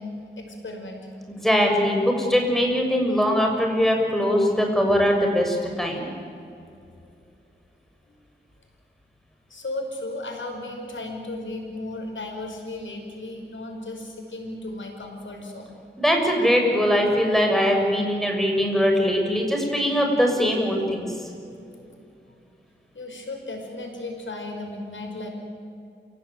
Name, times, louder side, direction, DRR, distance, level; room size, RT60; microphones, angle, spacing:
voice 1, 0.0-1.1 9.5-15.7 22.9-25.3, left 2 dB, 80° left, 3 dB, 5.5 m, -35 dB
voice 2, 1.3-6.1 16.0-21.1, equal, ahead, 2 dB, 6.6 m, -21 dB
28.5 x 17.0 x 9.3 m, 2.5 s
wide cardioid pair, 60°, 19 cm